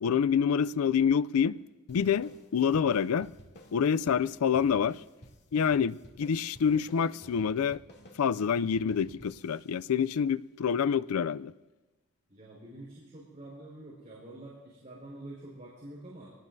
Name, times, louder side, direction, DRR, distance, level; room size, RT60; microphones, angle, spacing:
voice 1, 0.0-1.6 1.9-3.3 3.7-5.0 5.5-7.8 8.2-11.5, left 7 dB, 85° left, 0.4 m, -27 dB
sound 1, 1.9-10.7, equal, 55° left, 2.7 m, -54 dB
voice 2, 12.3-16.3, right 1 dB, 35° right, 4.9 m, -47 dB
25.0 x 19.0 x 2.7 m
head